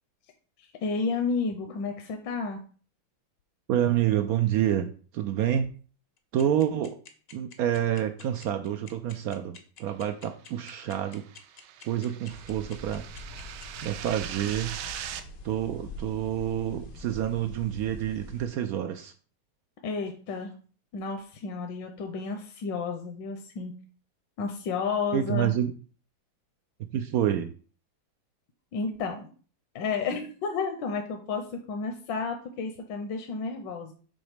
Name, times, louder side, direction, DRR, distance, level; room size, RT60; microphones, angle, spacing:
voice 1, 0.8-2.6 19.8-20.5 20.9-23.7 24.4-25.6 28.7-29.3 29.7-33.9, left 4 dB, 70° left, 4 dB, 1.4 m, -31 dB
voice 2, 3.7-5.7 6.3-7.0 7.3-11.2 11.9-13.0 13.8-14.8 15.4-19.1 25.1-25.7 26.9-27.5, right 10 dB, 90° right, 6 dB, 0.8 m, -28 dB
sound 1, 6.2-15.2, left 6 dB, 55° left, 0.7 m, -48 dB
sound 2, 10.8-15.2, right 10 dB, 75° right, 1.1 m, -41 dB
sound 3, 12.3-18.5, left 1 dB, 90° left, 1.9 m, -44 dB
6.2 x 3.9 x 5.0 m, 0.40 s
omnidirectional pair, 2.1 m